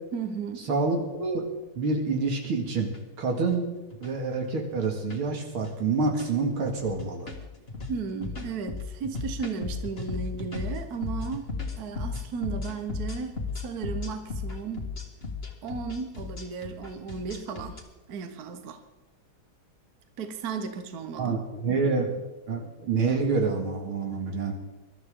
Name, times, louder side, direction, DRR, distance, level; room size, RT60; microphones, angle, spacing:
voice 1, 0.1-0.7 7.9-11.5 11.8-14.9 15.6-17.8 18.1-18.8 20.2-21.4, right 5 dB, 50° right, 7 dB, 1.5 m, -35 dB
voice 2, 0.7-1.5 1.8-2.9 3.2-3.7 4.0-7.3 21.2-22.2 22.5-24.5, right 4 dB, 80° right, 2 dB, 3.0 m, -27 dB
sound 1, 1.8-1.9 2.6-3.0 3.4-3.5 3.9-4.1 4.7-5.2 5.5-5.7 6.1-6.4 6.8-17.8, left 4 dB, 30° left, 1.9 m, -35 dB
21.5 x 12.5 x 3.8 m, 1.1 s
omnidirectional pair, 2.3 m